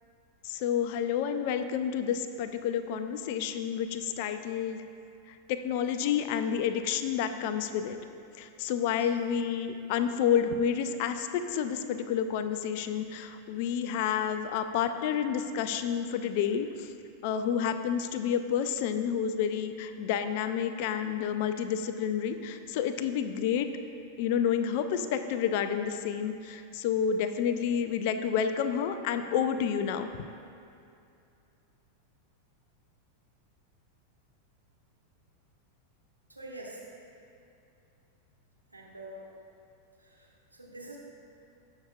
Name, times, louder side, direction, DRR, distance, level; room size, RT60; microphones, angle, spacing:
voice 1, 0.4-4.8 5.5-8.0 8.4-16.9 17.2-23.7 24.2-30.1, left 8 dB, 45° left, 9 dB, 0.5 m, -29 dB
voice 2, 36.3-36.8 38.7-39.3 40.0-41.0, right 1 dB, 85° right, -4 dB, 1.7 m, -46 dB
18.0 x 6.6 x 2.4 m, 2.5 s
figure-of-eight pair, 90°, 0 cm